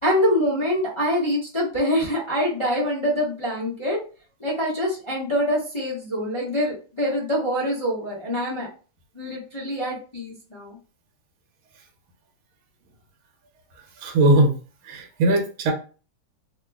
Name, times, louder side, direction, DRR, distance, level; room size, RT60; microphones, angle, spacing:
voice 1, 0.0-4.0 4.4-8.7 9.1-10.8, equal, 35° left, -6 dB, 0.4 m, -25 dB
voice 2, 14.0-14.5 14.8-15.7, right 1 dB, 80° right, 2 dB, 1.6 m, -19 dB
3.5 x 2.1 x 3.4 m, 0.37 s
omnidirectional pair, 2.3 m